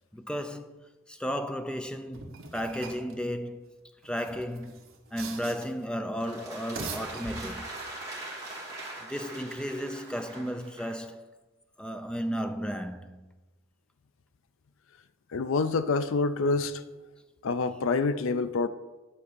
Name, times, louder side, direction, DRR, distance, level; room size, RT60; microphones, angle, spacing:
voice 1, 0.0-3.7 4.0-4.8 5.1-7.7 9.0-11.3 11.8-13.3, equal, 5° left, 0.4 m, -34 dB
sound 1, 2.1-3.1 4.0-5.9 6.5-7.8, right 4 dB, 65° right, 1.3 m, -42 dB
sound 2, 6.2-11.0, right 2 dB, 15° right, 2.3 m, -42 dB
voice 2, 15.3-16.8 17.4-18.7, left 4 dB, 65° left, 0.4 m, -27 dB
9.8 x 4.2 x 6.8 m
head